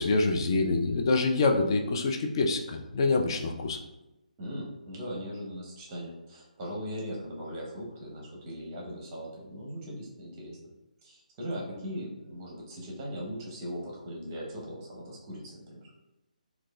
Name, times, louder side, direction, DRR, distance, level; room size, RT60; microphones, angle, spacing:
voice 1, 0.0-3.8, left 3 dB, 35° left, 3 dB, 0.3 m, -26 dB
voice 2, 4.4-10.6 11.0-15.9, equal, 20° right, -3 dB, 0.8 m, -39 dB
4.5 x 2.2 x 2.2 m, 0.95 s
figure-of-eight pair, 140°, 5 cm